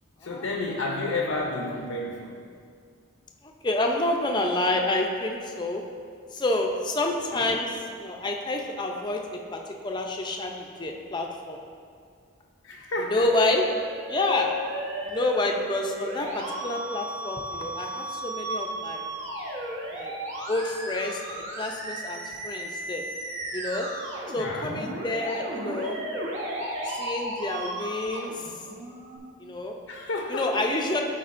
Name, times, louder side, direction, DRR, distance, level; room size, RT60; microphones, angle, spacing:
voice 1, 0.2-2.4 7.3-7.6 12.6-13.3 24.4-24.7 29.9-30.7, left 2 dB, 80° left, 1 dB, 0.6 m, -31 dB
voice 2, 3.4-5.8 6.3-11.6 13.0-13.7 14.1-14.5 15.0-19.1 19.9-20.1 20.5-23.0 23.5-23.9 24.3-26.0 26.9-28.4 29.4-29.8 30.3-31.0, left 2 dB, 20° left, 2 dB, 0.5 m, -28 dB
Musical instrument, 13.2-29.2, right 1 dB, 60° right, 1.1 m, -35 dB
12.0 x 4.5 x 2.5 m, 2.2 s
head